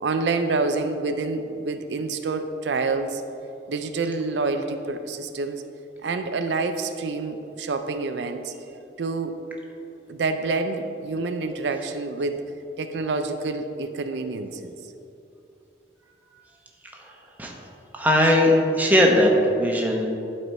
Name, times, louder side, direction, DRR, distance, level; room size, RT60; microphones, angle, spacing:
voice 1, 0.0-3.2 3.7-5.6 6.0-8.5 9.0-9.4 10.1-12.4 12.8-14.7, right 3 dB, 80° right, 8 dB, 0.4 m, -27 dB
voice 2, 17.9-20.1, left 1 dB, 10° right, -1 dB, 0.9 m, -19 dB
11.5 x 4.3 x 4.3 m, 2.7 s
head